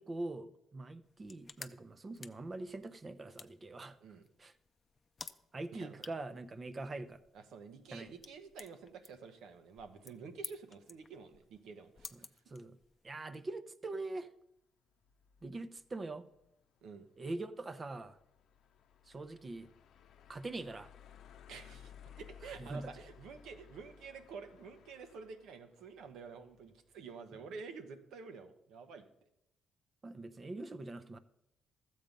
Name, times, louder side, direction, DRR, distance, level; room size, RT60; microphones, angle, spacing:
voice 1, 0.0-4.0 4.4-4.5 5.5-7.2 7.9-8.1 12.1-12.2 12.5-12.8 13.0-14.3 15.4-16.2 17.2-18.2 19.1-19.7 20.3-20.9 22.6-22.9 30.0-31.2, right 2 dB, 30° right, 0.7 m, -43 dB
sound 1, 1.0-13.1, left 4 dB, 35° left, 0.6 m, -54 dB
voice 2, 5.7-6.0 7.3-12.4 16.8-17.1 21.5-29.0, right 5 dB, 85° right, 1.1 m, -50 dB
sound 2, 14.9-27.1, left 8 dB, 75° left, 0.7 m, -59 dB
13.0 x 7.7 x 5.2 m
cardioid pair, 90°, 0 cm